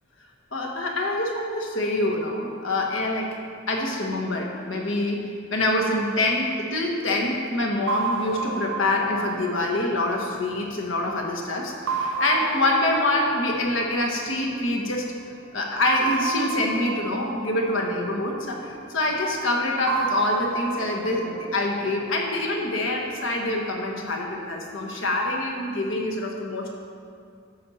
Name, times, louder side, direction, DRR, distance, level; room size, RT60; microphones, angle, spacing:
voice 1, 0.5-3.3 3.7-15.1 15.5-26.7, left 2 dB, 70° left, 0 dB, 1.4 m, -25 dB
sound 1, 7.9-11.2 11.9-14.8 15.9-19.0 19.9-23.0, right 5 dB, 65° right, 0.6 m, -32 dB
10.5 x 4.3 x 7.1 m, 2.3 s
head